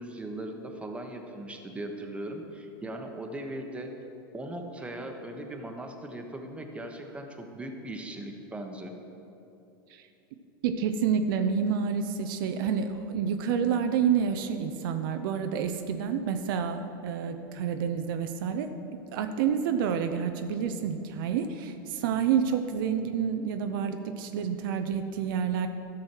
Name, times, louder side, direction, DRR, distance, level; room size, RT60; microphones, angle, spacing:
voice 1, 0.0-3.9 4.3-8.9, right 1 dB, 10° right, 3 dB, 1.1 m, -39 dB
voice 2, 10.6-18.7 19.1-25.7, right 7 dB, 65° right, 7 dB, 0.6 m, -28 dB
13.0 x 6.3 x 4.6 m, 2.9 s
hypercardioid pair, 95°, 12 cm